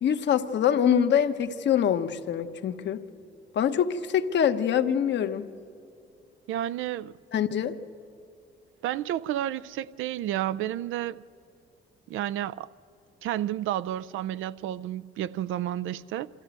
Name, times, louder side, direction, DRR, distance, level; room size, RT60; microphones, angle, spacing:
voice 1, 0.0-3.0 3.5-5.5 7.3-7.7, left 8 dB, 65° left, 1.1 m, -24 dB
voice 2, 6.5-7.1 8.8-11.2 12.1-12.7 13.2-16.3, right 12 dB, 85° right, 0.5 m, -31 dB
25.5 x 14.0 x 8.9 m
cardioid pair, 90°, 20 cm